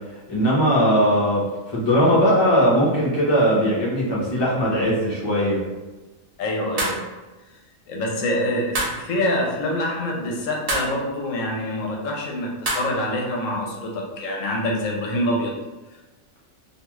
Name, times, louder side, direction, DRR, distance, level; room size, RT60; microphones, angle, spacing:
voice 1, 0.3-1.4 1.7-5.6, equal, 30° left, -6 dB, 0.5 m, -19 dB
voice 2, 6.4-7.0 7.9-15.5, left 1 dB, 75° left, -1 dB, 0.9 m, -25 dB
sound 1, 6.8-7.1 8.7-9.0 10.7-11.0 12.6-12.9, right 2 dB, 45° right, 0.5 m, -25 dB
2.6 x 2.3 x 3.0 m, 1.1 s
omnidirectional pair, 1.4 m